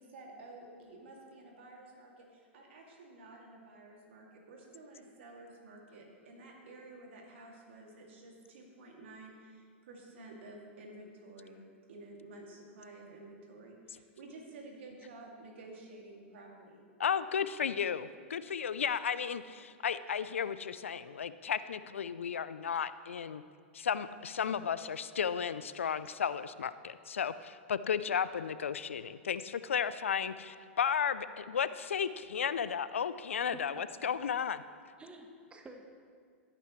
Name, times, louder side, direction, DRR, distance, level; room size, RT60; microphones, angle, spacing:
voice 1, 0.0-16.8, right 2 dB, 65° right, 0 dB, 2.3 m, -52 dB
voice 2, 17.0-23.4 23.7-34.6, left 7 dB, 80° left, 14 dB, 0.4 m, -34 dB
voice 3, 33.5-34.1 35.0-35.8, right 1 dB, 15° right, 4 dB, 1.2 m, -50 dB
16.0 x 9.1 x 3.1 m, 2.1 s
hypercardioid pair, 105°, 7 cm